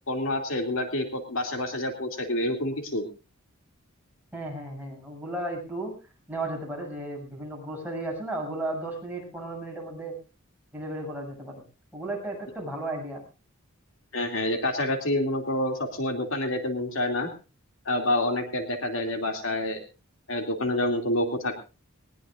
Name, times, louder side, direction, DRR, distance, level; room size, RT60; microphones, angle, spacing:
voice 1, 0.1-3.0 14.1-17.3 17.9-19.8 20.3-21.6, left 1 dB, 65° left, 4 dB, 2.7 m, -28 dB
voice 2, 4.3-5.9 6.3-10.2 10.7-11.6 11.9-13.2, right 1 dB, 10° right, -2 dB, 7.4 m, -34 dB
20.5 x 20.0 x 2.5 m, 0.32 s
head